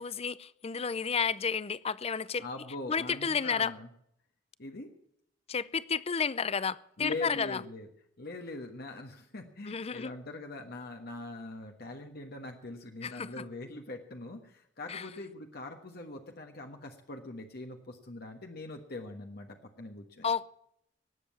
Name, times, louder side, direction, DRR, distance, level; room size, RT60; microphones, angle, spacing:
voice 1, 0.0-2.4 2.9-3.7 5.5-7.6 9.6-10.1 13.0-13.4 14.9-15.1 20.2-20.5, left 6 dB, 30° left, 0.5 m, -31 dB
voice 2, 2.4-3.9 4.6-4.9 7.0-7.9 8.2-20.3, left 2 dB, 55° left, 1.4 m, -42 dB
19.0 x 7.7 x 8.5 m
head